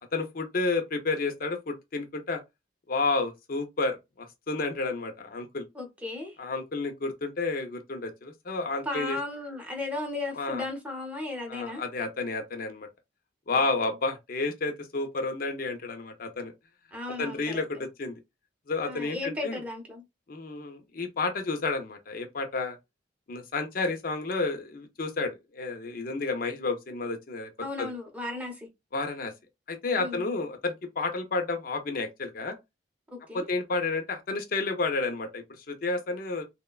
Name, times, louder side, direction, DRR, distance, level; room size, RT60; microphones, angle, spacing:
voice 1, 0.1-2.4 2.9-5.7 6.4-9.2 10.3-10.7 11.5-12.9 13.5-16.5 17.2-18.2 18.7-19.6 20.3-22.8 23.3-27.5 27.8-27.9 28.9-29.3 29.7-32.6 33.3-36.4, left 3 dB, 50° left, 0.5 m, -31 dB
voice 2, 5.7-6.4 8.9-11.8 13.6-13.7 16.9-17.6 18.8-20.0 27.6-28.7 30.0-30.2 33.1-33.5, left 2 dB, 10° right, 0.6 m, -35 dB
3.0 x 2.1 x 2.3 m
head